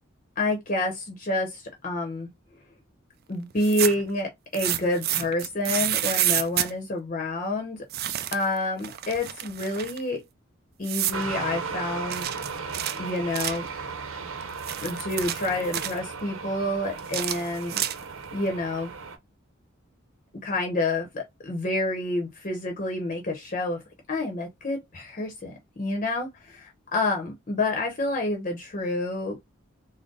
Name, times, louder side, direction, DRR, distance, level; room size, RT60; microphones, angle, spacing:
voice 1, 0.4-2.3 3.3-7.8 8.3-10.2 10.8-12.3 13.0-13.6 14.8-17.8 18.3-18.9 20.4-23.8 24.1-29.4, left 2 dB, 40° left, 0.8 m, -28 dB
sound 1, 3.5-4.1 4.5-6.7 7.9-8.5 8.8-10.0 10.8-11.2 12.1-13.7 14.4-16.0 17.0-18.2, right 12 dB, 50° right, 0.4 m, -29 dB
sound 2, 11.1-19.2, right 5 dB, 85° right, 0.8 m, -36 dB
3.8 x 2.1 x 3.8 m
head